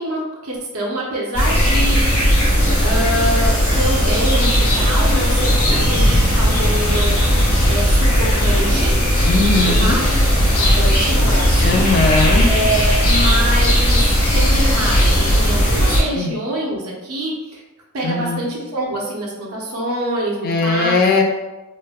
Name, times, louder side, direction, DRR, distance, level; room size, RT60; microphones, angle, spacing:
voice 1, 0.0-2.1 2.8-7.3 7.7-8.9 9.6-11.8 12.4-17.6 17.9-21.0, right 1 dB, 80° right, -3 dB, 0.7 m, -25 dB
sound 1, 1.3-16.0, equal, 80° left, 1.0 m, -16 dB
voice 2, 9.2-10.0 11.6-12.5 16.1-16.3 18.0-18.4 20.4-21.2, left 3 dB, 40° left, 1 dB, 0.4 m, -18 dB
3.1 x 2.1 x 2.3 m, 1.1 s
head